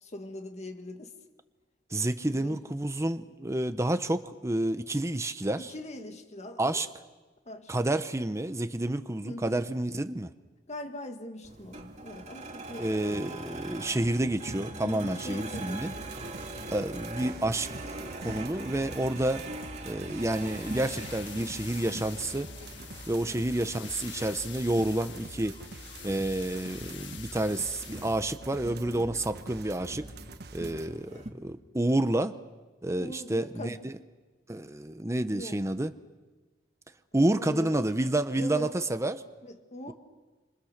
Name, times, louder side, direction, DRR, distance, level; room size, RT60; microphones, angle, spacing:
voice 1, 0.0-1.1 2.3-2.6 5.6-6.9 7.5-7.7 9.2-9.6 10.7-13.5 14.8-16.1 23.3-23.5 28.9-29.2 31.1-31.2 33.0-33.8 35.3-35.6 37.2-38.0 38.3-38.7 39.4-39.9, left 1 dB, 40° left, 1.7 m, -42 dB
voice 2, 1.9-5.7 6.6-6.9 7.7-10.3 12.8-15.9 16.7-17.7 18.0-19.4 19.8-22.5 23.1-25.5 26.0-30.1 30.5-32.3 32.8-33.9 34.5-35.9 37.1-39.2, right 1 dB, 15° right, 0.8 m, -29 dB
sound 1, 11.4-31.3, right 2 dB, 40° right, 2.3 m, -43 dB
sound 2, 15.9-30.9, right 2 dB, 60° right, 1.2 m, -46 dB
sound 3, 20.2-28.2, left 10 dB, 85° left, 1.5 m, -47 dB
26.5 x 26.5 x 6.6 m
head